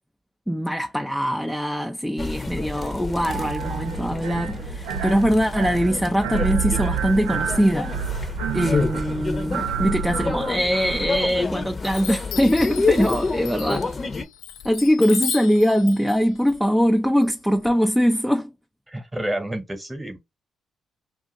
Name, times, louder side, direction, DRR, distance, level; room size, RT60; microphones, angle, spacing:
voice 1, 0.5-7.9 8.5-13.9 14.6-18.5, equal, ahead, 0.5 m, -22 dB
sound 1, 2.2-14.2, left 4 dB, 35° left, 0.8 m, -29 dB
sound 2, 3.3-11.3, right 8 dB, 85° right, 0.4 m, -29 dB
Chime, 10.8-11.5 11.8-17.7, left 10 dB, 80° left, 0.4 m, -36 dB
voice 2, 18.9-20.2, right 1 dB, 15° right, 1.2 m, -29 dB
2.6 x 2.5 x 3.9 m
hypercardioid pair, 50°, 0 cm